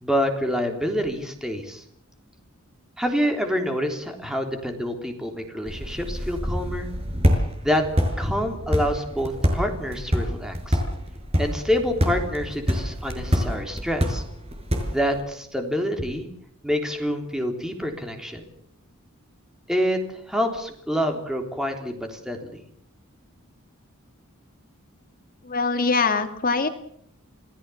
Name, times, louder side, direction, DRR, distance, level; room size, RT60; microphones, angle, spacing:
voice 1, 0.0-1.8 3.0-6.9 7.6-7.9 8.2-10.8 11.4-14.2 14.9-16.3 16.6-18.5 19.7-20.0 20.3-22.6, equal, 5° right, 4 dB, 3.5 m, -27 dB
sound 1, 5.7-15.2, equal, 30° right, 5.9 m, -26 dB
voice 2, 25.4-26.7, left 4 dB, 40° left, 7 dB, 2.2 m, -23 dB
28.0 x 19.0 x 7.1 m, 0.69 s
head